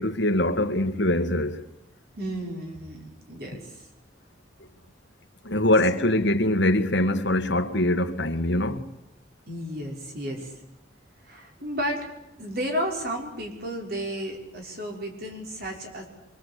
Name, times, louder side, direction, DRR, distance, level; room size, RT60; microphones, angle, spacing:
voice 1, 0.0-1.6 5.4-8.9, left 1 dB, 65° left, 1.9 m, -23 dB
voice 2, 2.1-3.9 9.5-10.6 11.2-12.1 12.4-16.0, equal, 50° right, 5.6 m, -33 dB
24.5 x 24.5 x 8.4 m
head